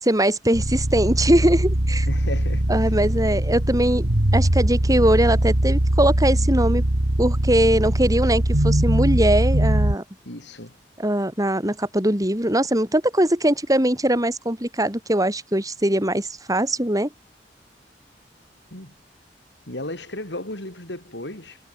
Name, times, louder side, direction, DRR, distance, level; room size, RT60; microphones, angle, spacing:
voice 1, 0.0-2.1 2.7-4.1 4.3-6.8 7.2-10.0 11.0-17.1, right 1 dB, 20° right, 7.9 m, -21 dB
sound 1, 0.5-9.9, right 1 dB, 65° right, 2.4 m, -21 dB
voice 2, 2.1-2.9 10.3-10.7 18.7-18.9 19.7-21.6, left 1 dB, 75° left, 7.2 m, -34 dB
head